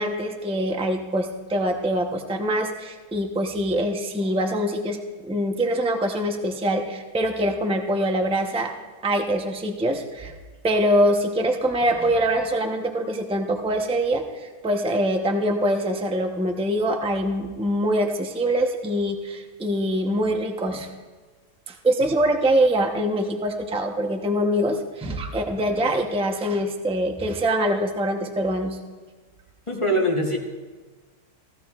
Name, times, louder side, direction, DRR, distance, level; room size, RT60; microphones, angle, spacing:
voice 1, 0.0-5.0 5.3-8.7 9.0-10.3 10.6-20.9 21.7-28.8, right 1 dB, 5° right, 3 dB, 0.6 m, -24 dB
voice 2, 29.7-30.4, equal, 25° left, 1 dB, 1.0 m, -22 dB
16.5 x 14.5 x 2.4 m, 1.4 s
omnidirectional pair, 1.6 m